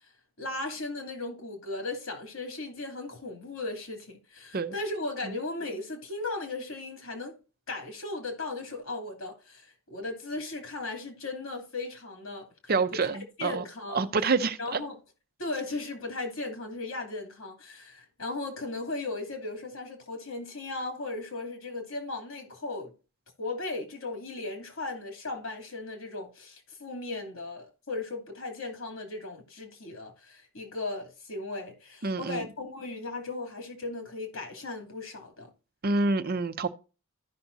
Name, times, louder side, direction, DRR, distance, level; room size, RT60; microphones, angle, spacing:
voice 1, 0.4-7.4 7.7-13.0 13.4-14.1 14.6-14.9 15.4-22.9 23.4-35.5, left 2 dB, 75° left, 2.8 m, -37 dB
voice 2, 12.7-13.6 13.9-14.8 32.0-32.4 35.8-36.7, right 3 dB, 45° right, 0.6 m, -27 dB
14.5 x 5.9 x 2.7 m
head